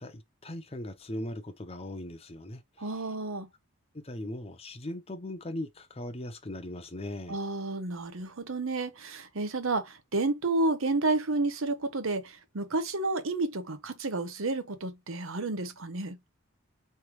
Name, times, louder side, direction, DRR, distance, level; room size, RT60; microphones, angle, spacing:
voice 1, 0.0-3.1 4.0-7.4, left 1 dB, 25° left, 0.7 m, -39 dB
voice 2, 2.8-3.5 7.3-16.2, right 2 dB, 70° right, 0.8 m, -31 dB
4.8 x 3.3 x 3.1 m
head